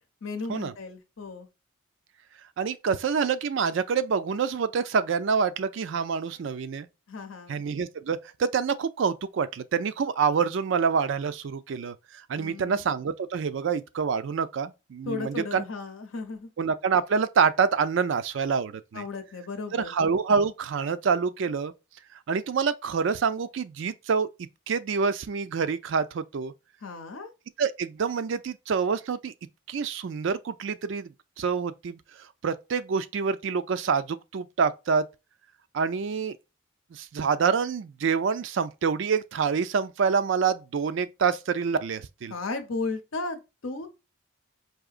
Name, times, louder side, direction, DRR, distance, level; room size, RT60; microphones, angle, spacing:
voice 1, 0.2-1.5 7.1-7.6 12.3-12.8 15.0-16.5 18.9-19.9 26.8-27.3 42.3-43.9, left 3 dB, 75° left, 0.7 m, -35 dB
voice 2, 2.6-6.9 7.5-12.0 12.3-15.6 16.6-19.0 19.7-21.7 22.3-24.3 24.7-26.5 27.6-29.3 29.7-31.1 31.4-32.0 32.4-35.1 35.7-36.4 36.9-42.3, right 5 dB, 60° right, 0.4 m, -26 dB
4.8 x 2.8 x 2.4 m
head